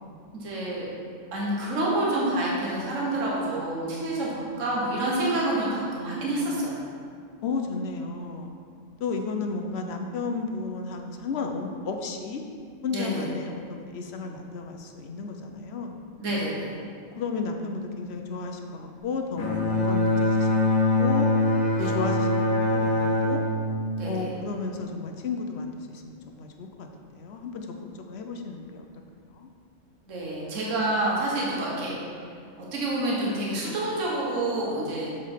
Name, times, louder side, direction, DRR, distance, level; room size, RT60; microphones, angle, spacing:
voice 1, 0.4-0.9 1.3-6.8 12.9-13.3 16.2-16.8 21.8-21.9 24.0-24.3 30.1-31.9 32.6-35.2, right 1 dB, 65° right, -5 dB, 1.6 m, -28 dB
voice 2, 7.4-8.5 9.0-12.4 12.8-16.0 17.1-21.3 21.8-23.5 24.0-26.9 27.1-27.7 28.1-28.9 29.3-29.5, left 4 dB, 60° left, 4 dB, 0.8 m, -33 dB
Bowed string instrument, 19.4-24.8, left 1 dB, 80° left, 1.4 m, -24 dB
6.7 x 5.0 x 5.6 m, 2.2 s
omnidirectional pair, 1.4 m